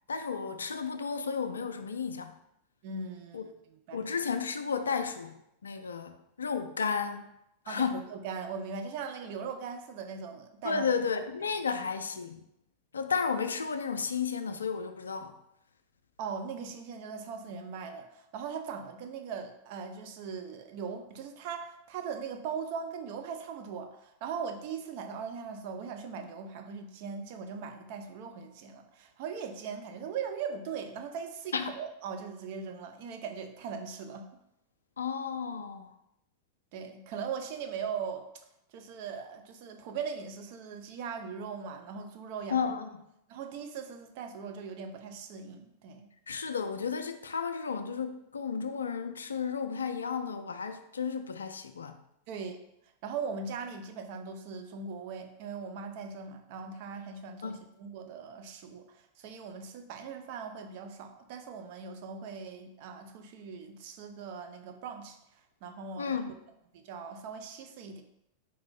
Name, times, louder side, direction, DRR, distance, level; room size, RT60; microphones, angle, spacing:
voice 1, 0.1-2.3 3.3-3.4 3.9-7.3 7.7-8.0 10.6-12.4 12.9-15.3 31.5-31.7 35.0-35.9 42.5-42.9 46.3-52.0 57.4-57.7 66.0-66.4, left 6 dB, 70° left, 8 dB, 0.3 m, -33 dB
voice 2, 2.8-3.5 3.9-4.1 7.7-11.0 11.7-11.8 16.2-34.3 36.7-38.3 38.7-42.7 43.3-46.1 52.3-52.6 53.0-65.2 65.6-66.2 66.7-68.0, right 6 dB, 45° right, 6 dB, 0.5 m, -40 dB
4.2 x 2.6 x 3.8 m, 0.80 s
figure-of-eight pair, 90°, 0 cm